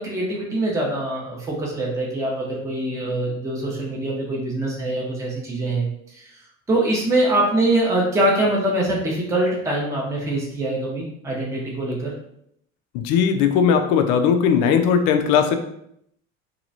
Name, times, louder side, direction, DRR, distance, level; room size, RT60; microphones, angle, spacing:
voice 1, 0.0-5.9 6.1-6.3 6.7-12.1, right 1 dB, 5° right, -3 dB, 0.7 m, -23 dB
voice 2, 12.9-15.6, left 7 dB, 45° left, 5 dB, 0.5 m, -18 dB
2.8 x 2.3 x 2.6 m, 0.73 s
figure-of-eight pair, 60°, 41 cm